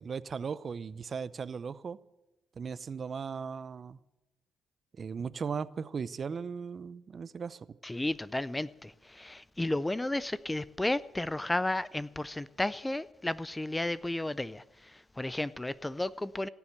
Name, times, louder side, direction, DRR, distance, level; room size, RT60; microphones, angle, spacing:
voice 1, 0.0-2.0 2.6-4.0 5.0-7.7, right 6 dB, 45° right, 0.6 m, -37 dB
voice 2, 7.8-16.5, left 1 dB, 10° left, 0.4 m, -33 dB
17.0 x 7.1 x 10.0 m
cardioid pair, 90°, 0 cm